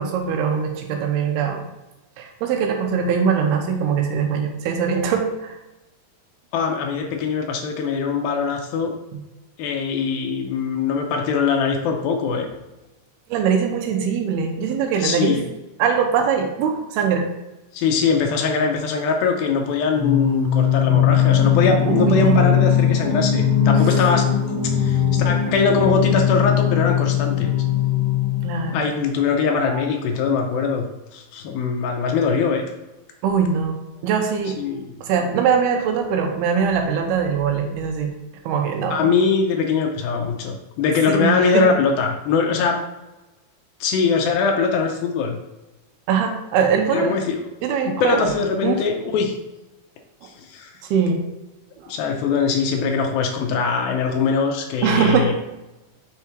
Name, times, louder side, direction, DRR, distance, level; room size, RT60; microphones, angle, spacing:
voice 1, 0.0-1.7 2.2-5.6 9.1-9.2 13.3-15.4 15.8-17.3 21.9-22.5 28.4-28.8 29.7-29.8 33.2-34.6 35.0-38.1 38.5-39.1 41.1-41.7 46.1-47.2 47.6-48.3 48.6-48.8 50.9-51.2 54.8-55.3, right 6 dB, 90° right, 4 dB, 2.8 m, -22 dB
voice 2, 6.5-8.9 9.6-12.5 15.0-15.5 17.7-24.3 24.6-27.5 28.7-30.9 31.1-32.6 34.6-34.9 38.9-42.8 43.8-45.4 46.9-47.5 47.8-49.4 50.2-50.7 51.9-55.3, left 5 dB, 80° left, 3 dB, 2.4 m, -22 dB
Singing, 19.9-28.8, left 8 dB, 40° right, 2.2 m, -19 dB
6.8 x 3.6 x 4.5 m, 1.0 s
omnidirectional pair, 4.4 m